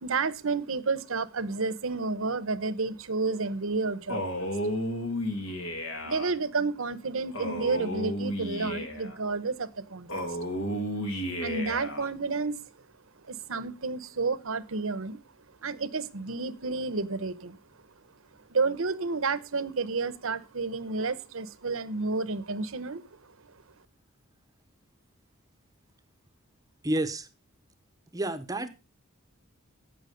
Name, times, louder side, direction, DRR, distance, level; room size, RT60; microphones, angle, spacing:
voice 1, 0.0-4.6 6.0-10.2 11.4-12.6 13.3-15.2 15.6-17.6 18.5-23.0, right 4 dB, 65° right, 1.0 m, -31 dB
Male speech man speaking, 4.1-6.3 7.3-9.2 10.1-12.1, equal, 65° left, 2.7 m, -32 dB
voice 2, 26.8-27.3 28.1-28.7, right 1 dB, 15° right, 0.9 m, -29 dB
15.0 x 6.2 x 5.2 m
head